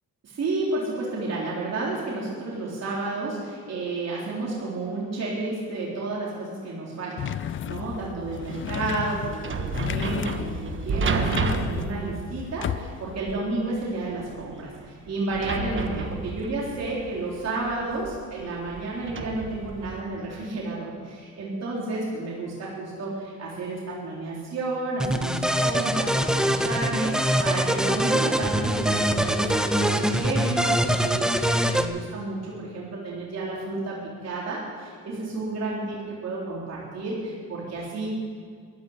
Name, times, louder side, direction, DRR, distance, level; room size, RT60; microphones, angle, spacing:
voice 1, 0.2-34.0 34.2-38.1, right 2 dB, 60° right, -5 dB, 3.9 m, -31 dB
sound 1, 7.2-13.2, left 10 dB, 45° left, 0.4 m, -34 dB
sound 2, 8.3-20.0, right 4 dB, 40° right, 1.3 m, -32 dB
sound 3, 25.0-31.8, equal, ahead, 1.0 m, -23 dB
13.0 x 12.0 x 8.1 m, 2.1 s
cardioid pair, 90°, 30 cm